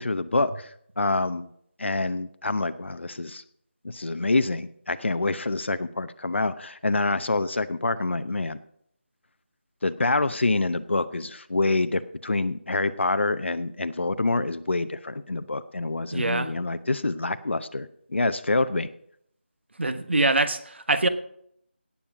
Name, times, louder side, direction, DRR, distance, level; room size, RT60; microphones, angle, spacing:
voice 1, 0.0-1.5 1.8-3.4 3.8-8.6 9.8-18.9, left 2 dB, 75° left, 12 dB, 0.7 m, -26 dB
voice 2, 16.1-16.5 19.8-21.1, right 2 dB, 70° right, 11 dB, 1.3 m, -24 dB
17.5 x 7.3 x 5.0 m, 0.69 s
figure-of-eight pair, 180°, 6 cm